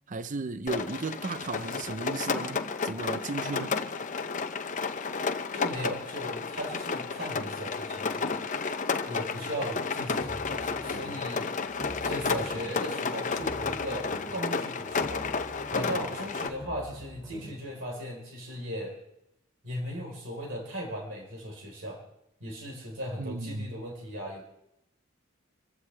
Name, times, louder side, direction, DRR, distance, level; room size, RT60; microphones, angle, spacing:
voice 1, 0.1-3.8 23.2-23.7, right 3 dB, 40° right, 0.6 m, -35 dB
Rain, 0.7-16.5, left 4 dB, 40° left, 0.7 m, -32 dB
voice 2, 5.5-8.5 9.1-11.5 12.0-15.2 15.7-19.0 19.6-22.0 22.4-24.4, equal, 65° right, 4.2 m, -37 dB
sound 1, 10.2-11.3 11.6-12.9 13.2-14.5 14.8-17.7, equal, 10° right, 2.4 m, -45 dB
25.5 x 15.0 x 3.4 m
head